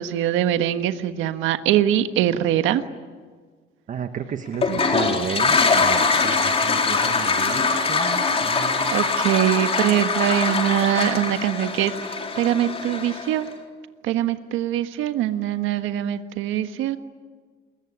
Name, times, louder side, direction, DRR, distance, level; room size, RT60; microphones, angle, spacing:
voice 1, 0.0-2.8 4.7-4.8 8.9-13.5 14.0-17.0, right 11 dB, 80° right, 9 dB, 1.4 m, -23 dB
voice 2, 3.9-8.9, right 7 dB, 40° right, 7 dB, 1.4 m, -33 dB
Toilet flush, 4.5-13.4, left 4 dB, 30° left, 4.1 m, -22 dB
27.5 x 22.0 x 9.8 m, 1.5 s
cardioid pair, 130°, 20 cm